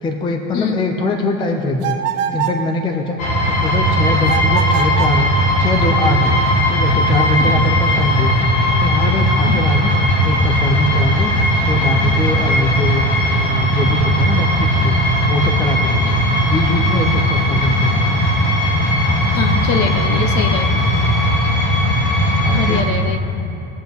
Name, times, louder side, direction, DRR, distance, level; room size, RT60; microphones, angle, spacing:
voice 1, 0.0-2.0 2.3-8.4 8.8-13.1 13.5-15.0 15.3-16.2 16.5-18.1 22.4-22.9, left 2 dB, 10° left, 4 dB, 0.5 m, -22 dB
sound 1, 1.8-2.6 4.2-5.2, right 10 dB, 55° right, 1.4 m, -23 dB
sound 2, 3.2-22.8, equal, 85° left, 2.7 m, -17 dB
voice 2, 19.3-20.8 22.5-23.2, left 6 dB, 45° left, 8 dB, 0.9 m, -23 dB
21.5 x 7.5 x 3.5 m, 2.8 s
cardioid pair, 155°, 41 cm